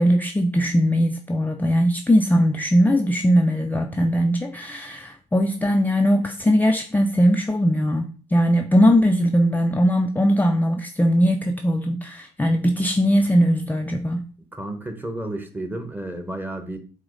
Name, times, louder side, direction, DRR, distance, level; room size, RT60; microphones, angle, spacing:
voice 1, 0.0-14.3, equal, 15° left, 4 dB, 0.4 m, -20 dB
voice 2, 14.5-16.8, right 1 dB, 15° right, 6 dB, 0.9 m, -31 dB
4.6 x 2.0 x 3.8 m, 0.38 s
supercardioid pair, 60°, 13 cm